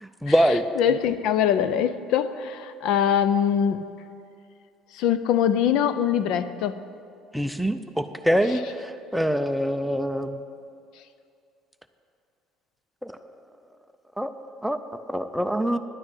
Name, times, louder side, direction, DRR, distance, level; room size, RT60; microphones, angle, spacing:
voice 1, 0.0-0.6 7.3-10.4 13.0-13.1 14.2-14.3 14.6-14.8 15.1-15.8, equal, ahead, 9 dB, 0.4 m, -24 dB
voice 2, 0.8-3.8 4.9-6.8, left 9 dB, 65° left, 13 dB, 0.5 m, -23 dB
11.0 x 6.3 x 9.1 m, 2.4 s
cardioid pair, 145°, 0 cm